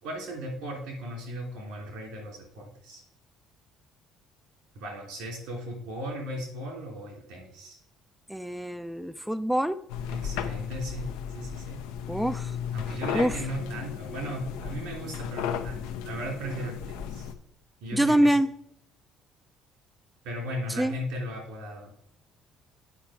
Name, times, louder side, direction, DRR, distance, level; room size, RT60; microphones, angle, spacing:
voice 1, 0.0-3.0 4.7-7.8 10.1-11.1 11.3-11.8 12.7-17.3 17.8-18.4 20.2-21.9, equal, 75° right, 1 dB, 2.9 m, -37 dB
voice 2, 8.3-9.8 12.1-12.6 13.1-13.4 17.9-18.5 20.7-21.0, right 1 dB, 5° right, 11 dB, 0.4 m, -25 dB
sound 1, 9.9-17.3, left 8 dB, 80° left, 0.7 m, -35 dB
9.1 x 4.7 x 4.8 m, 0.72 s
hypercardioid pair, 60°, 0 cm